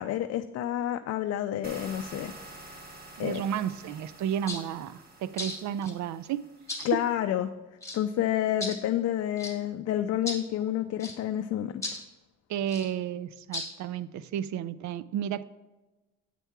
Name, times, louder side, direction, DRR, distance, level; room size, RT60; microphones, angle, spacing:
voice 1, 0.0-2.8 3.2-3.4 6.8-7.5 7.9-11.7, left 11 dB, 55° left, 8 dB, 0.4 m, -29 dB
sound 1, 1.6-7.1, right 2 dB, 30° right, 1.3 m, -48 dB
voice 2, 3.2-6.5 6.8-6.9 12.5-15.4, right 9 dB, 70° right, 17 dB, 0.5 m, -32 dB
sound 2, 4.5-4.6 5.4-5.9 6.7-6.9 7.8-8.0 8.6-8.8 9.4-9.5 10.3-10.4 11.0-11.2 11.8-12.0 12.7-12.9 13.5-13.7, left 1 dB, 10° left, 1.8 m, -35 dB
8.4 x 4.5 x 5.8 m, 1.1 s
cardioid pair, 90°, 30 cm